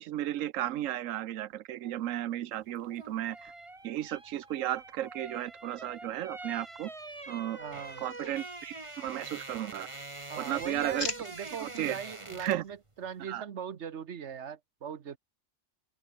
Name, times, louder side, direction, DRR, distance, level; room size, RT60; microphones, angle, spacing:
voice 1, 0.0-3.5 3.8-6.9 7.3-7.6 8.0-9.9 10.4-11.1 11.4-12.0 12.4-12.6 13.3-13.4, right 12 dB, 85° right, 1.1 m, -34 dB
sound 1, 2.8-12.8 13.0-13.2, right 2 dB, 25° right, 2.0 m, -45 dB
voice 2, 7.6-8.0 10.3-15.2, right 8 dB, 65° right, 1.3 m, -40 dB
sound 2, 7.9-9.0 9.4-10.1 10.4-11.8 12.4-12.7, left 4 dB, 75° left, 2.9 m, -43 dB
omnidirectional pair, 1.3 m